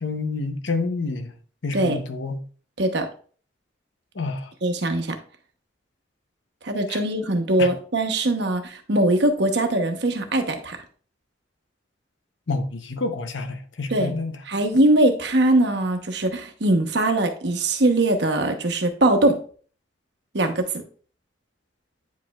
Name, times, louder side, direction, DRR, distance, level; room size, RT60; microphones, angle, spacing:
voice 1, 0.0-1.3 1.6-2.4 4.2-4.5 6.9-7.0 7.6-7.7 12.5-14.3, left 3 dB, 85° left, 0.8 m, -28 dB
voice 2, 4.6-5.2 6.6-10.8 13.9-14.2 14.5-19.4 20.3-20.6, right 1 dB, 65° right, 1.0 m, -21 dB
9.2 x 5.1 x 2.3 m
head